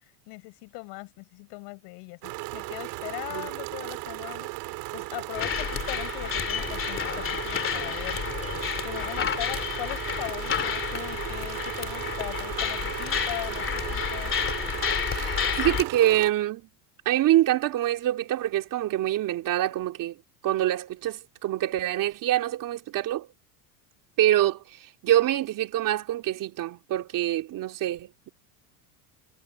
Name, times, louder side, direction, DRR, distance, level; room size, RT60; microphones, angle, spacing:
voice 1, 0.3-4.5 4.9-8.2 8.8-14.3, left 29 dB, 65° left, 6.7 m, -39 dB
sound 1, 2.2-16.3, right 23 dB, 65° right, 3.9 m, -36 dB
sound 2, 5.3-15.8, left 8 dB, 30° left, 2.6 m, -30 dB
voice 2, 15.1-16.6 17.0-20.1 20.4-23.3 24.2-24.6 25.0-28.3, right 13 dB, 45° right, 3.2 m, -25 dB
supercardioid pair, 130°, 44 cm